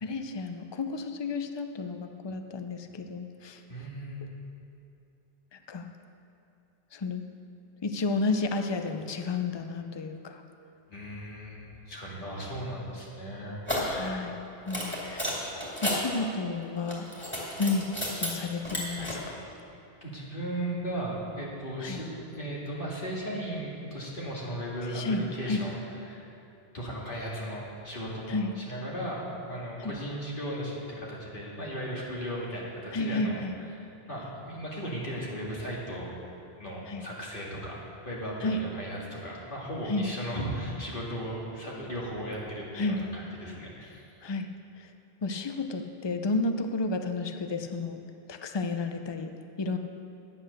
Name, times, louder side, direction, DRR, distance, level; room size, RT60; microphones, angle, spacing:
voice 1, 0.0-3.6 5.5-5.9 6.9-7.2 7.8-10.4 13.4-13.5 13.9-15.4 15.8-17.1 17.6-17.9 18.2-19.4 21.8-22.0 24.8-25.6 28.3-28.6 29.8-30.0 32.9-33.6 36.9-37.1 38.4-38.6 39.9-40.1 42.7-43.0 44.2-44.5 44.8-44.9 45.2-48.0 48.3-49.3 49.6-49.8, left 3 dB, 30° left, 7 dB, 0.5 m, -32 dB
voice 2, 3.7-4.2 10.9-13.6 20.0-25.8 26.1-26.2 26.7-29.2 29.5-33.4 34.1-36.1 36.6-37.8 38.0-44.0, equal, 55° left, -5 dB, 2.3 m, -36 dB
sound 1, 13.7-14.0 14.7-16.0 16.8-18.3 18.6-19.1, equal, 10° left, 2.5 m, -32 dB
10.5 x 8.3 x 6.5 m, 2.9 s
omnidirectional pair, 1.1 m